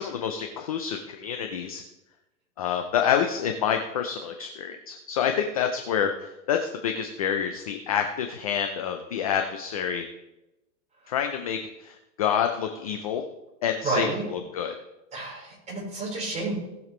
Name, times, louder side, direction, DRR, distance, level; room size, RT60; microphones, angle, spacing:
voice 1, 0.0-1.8 2.6-10.0 11.1-13.2 13.6-14.7, left 8 dB, 25° left, 5 dB, 0.4 m, -28 dB
voice 2, 13.8-14.2 15.1-16.5, right 3 dB, 15° right, -4 dB, 4.5 m, -30 dB
19.0 x 7.1 x 3.2 m, 0.95 s
hypercardioid pair, 145°, 50 cm